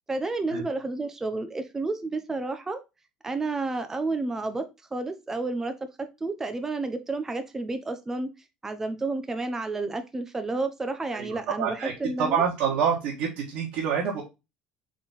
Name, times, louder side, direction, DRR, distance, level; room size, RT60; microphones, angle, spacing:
voice 1, 0.1-2.8 3.2-4.7 4.9-8.3 8.6-12.4, right 3 dB, 15° right, 0.6 m, -31 dB
voice 2, 11.1-11.9 12.2-14.2, right 7 dB, 65° right, 1.3 m, -27 dB
3.8 x 3.2 x 4.0 m
supercardioid pair, 90°, 3 cm